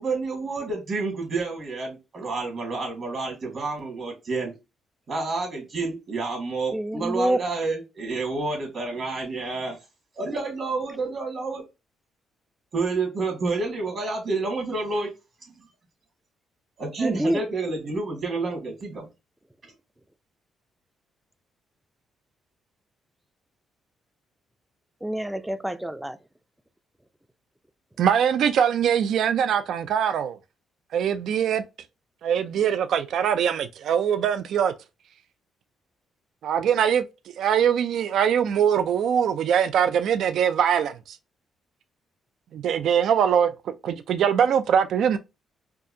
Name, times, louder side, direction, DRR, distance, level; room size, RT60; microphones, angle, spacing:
voice 1, 0.0-4.5 5.1-9.8 10.2-11.6 12.7-15.1 16.8-19.1, right 3 dB, 50° right, 1.9 m, -29 dB
voice 2, 6.7-7.4 17.0-17.4 25.0-26.2, right 1 dB, 5° right, 0.4 m, -27 dB
voice 3, 28.0-30.4 30.9-31.6 32.2-34.7 36.4-37.0 37.4-41.2 42.5-45.2, right 8 dB, 70° right, 0.4 m, -22 dB
4.5 x 2.5 x 2.7 m
cardioid pair, 90°, 0 cm